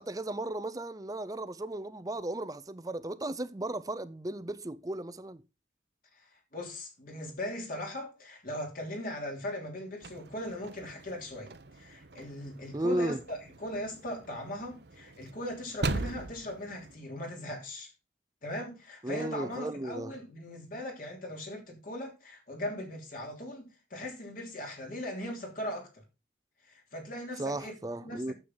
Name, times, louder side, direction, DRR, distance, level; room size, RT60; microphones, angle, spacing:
voice 1, 0.0-5.4 12.7-13.2 19.0-20.1 27.4-28.3, right 1 dB, 20° right, 0.6 m, -35 dB
voice 2, 6.1-17.9 18.4-26.0 26.6-28.3, left 1 dB, 50° left, 3.2 m, -39 dB
sound 1, 10.0-17.0, right 2 dB, 65° right, 0.9 m, -40 dB
9.5 x 7.7 x 4.0 m
head